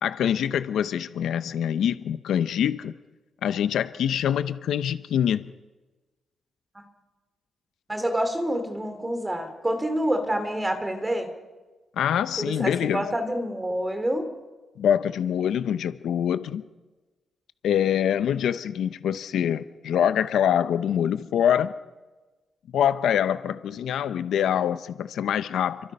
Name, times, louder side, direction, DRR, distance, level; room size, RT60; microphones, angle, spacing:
voice 1, 0.0-2.9 3.4-5.4 12.0-13.0 14.8-16.6 17.6-21.7 22.7-25.9, left 9 dB, 75° left, 12 dB, 0.7 m, -25 dB
voice 2, 7.9-11.3 12.4-14.3, right 1 dB, 10° right, 7 dB, 2.5 m, -27 dB
28.0 x 24.0 x 5.5 m, 1.2 s
wide cardioid pair, 180°, 0 cm